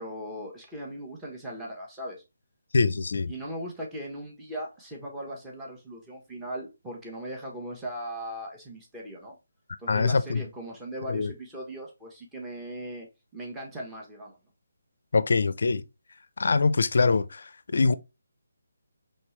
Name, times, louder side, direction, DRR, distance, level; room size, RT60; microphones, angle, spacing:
voice 1, 0.0-2.2 3.3-9.3 9.8-13.1 13.3-14.4, right 1 dB, 10° right, 1.1 m, -38 dB
voice 2, 2.7-3.3 9.9-10.4 11.1-11.3 15.1-15.8 16.4-17.9, left 4 dB, 60° left, 0.4 m, -24 dB
4.4 x 3.2 x 3.1 m
figure-of-eight pair, 150°, 0 cm